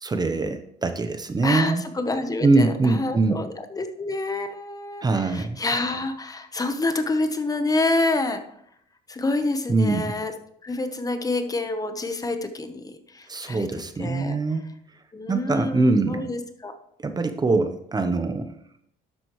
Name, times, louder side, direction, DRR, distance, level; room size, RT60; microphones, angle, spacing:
voice 1, 0.0-1.8 2.4-3.4 5.0-5.6 9.7-10.1 13.3-14.7 15.3-16.3 17.0-18.5, right 3 dB, 25° right, 8 dB, 0.8 m, -23 dB
voice 2, 1.4-8.4 9.1-10.3 10.6-13.7 14.0-14.4 15.1-16.8, left 2 dB, 20° left, 7 dB, 1.1 m, -27 dB
12.0 x 7.8 x 3.2 m, 0.71 s
cardioid pair, 110°, 17 cm